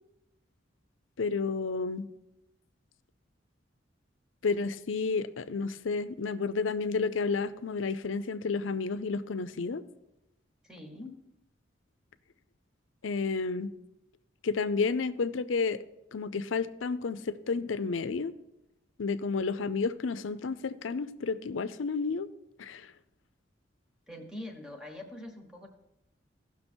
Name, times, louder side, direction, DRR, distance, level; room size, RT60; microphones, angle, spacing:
voice 1, 1.2-2.1 4.4-9.8 13.0-13.7 14.4-15.8 16.1-18.3 19.0-22.3 22.6-22.9, left 4 dB, 90° left, 13 dB, 0.5 m, -31 dB
voice 2, 10.6-11.2 24.1-25.7, left 1 dB, 5° right, 3 dB, 1.2 m, -43 dB
15.5 x 6.1 x 4.4 m, 0.92 s
head